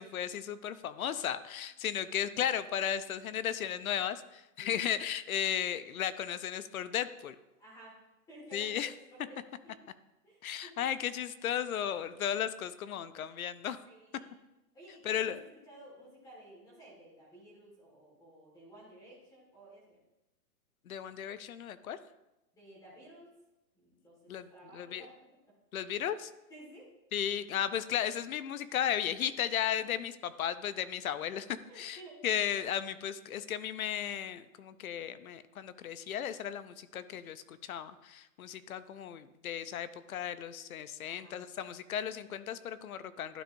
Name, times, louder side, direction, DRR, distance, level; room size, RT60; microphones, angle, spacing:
voice 1, 0.0-7.4 8.5-8.9 10.4-13.8 15.1-15.4 20.9-22.0 24.3-25.0 25.7-26.3 27.1-43.4, left 9 dB, 60° left, 14 dB, 0.6 m, -35 dB
voice 2, 7.6-8.0 8.3-9.7 10.2-10.8 13.9-14.3 14.7-20.0 22.5-23.3 23.7-25.1 25.5-25.6 26.5-26.9 29.8-29.9 31.7-32.2 41.1-41.4, right 1 dB, 5° left, -5 dB, 1.6 m, -54 dB
12.0 x 5.2 x 2.5 m, 0.93 s
hypercardioid pair, 170°, 47 cm